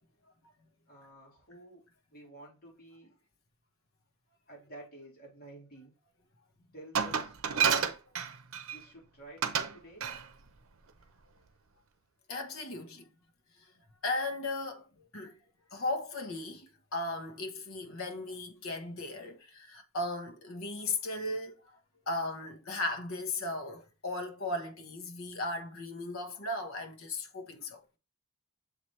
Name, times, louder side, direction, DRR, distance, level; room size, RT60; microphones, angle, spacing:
voice 1, 0.9-1.8 2.1-3.2 4.5-5.9 6.7-8.0 8.7-10.1, right 1 dB, 45° left, 3.8 m, -51 dB
Glass, 7.0-8.8 9.4-9.7 10.0-10.3, right 7 dB, 75° right, 0.7 m, -29 dB
voice 2, 12.3-13.1 14.0-15.3 15.7-21.8 22.1-27.8, left 2 dB, 70° left, 1.1 m, -36 dB
7.0 x 4.4 x 3.1 m
head